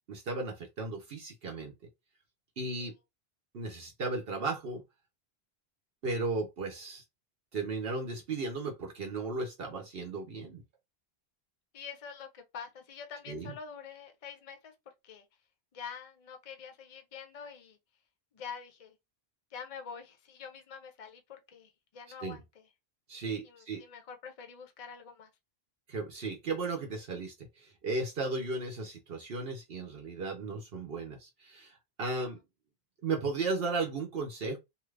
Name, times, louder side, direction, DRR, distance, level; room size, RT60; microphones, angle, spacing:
voice 1, 0.1-1.7 2.6-2.9 3.5-4.8 6.0-7.0 7.5-10.6 13.3-13.5 22.2-22.4 23.1-23.8 25.9-32.4 33.0-34.6, right 3 dB, 65° right, 1.0 m, -35 dB
voice 2, 11.7-14.7 15.0-15.3 15.7-17.8 18.3-19.0 19.5-22.6 23.4-25.3 32.2-32.3, left 6 dB, 40° left, 0.6 m, -46 dB
2.7 x 2.4 x 3.2 m
omnidirectional pair, 1.1 m